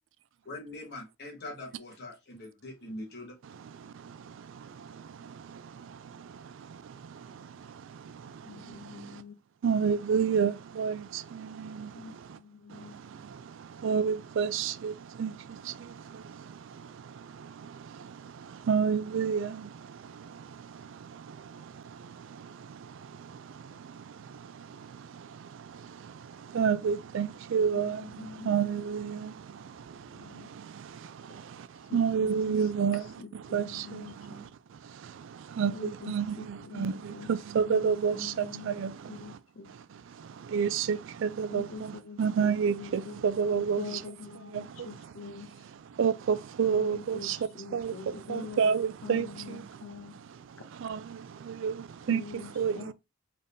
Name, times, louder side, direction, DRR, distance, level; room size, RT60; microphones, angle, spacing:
voice 1, 0.4-3.4, left 1 dB, 55° left, 1.4 m, -42 dB
voice 2, 3.7-9.2 9.6-12.4 12.7-33.1 33.5-39.4 39.7-44.0 44.5-45.0 45.9-49.8 50.1-52.9, right 6 dB, 65° right, 0.4 m, -32 dB
voice 3, 8.5-9.4 11.9-12.9 27.7-29.4 29.9-30.5 31.9-34.5 35.7-37.3 37.5-39.7 41.5-45.7 46.7-50.2 52.1-52.9, left 4 dB, 90° left, 0.6 m, -45 dB
3.8 x 2.7 x 3.5 m
head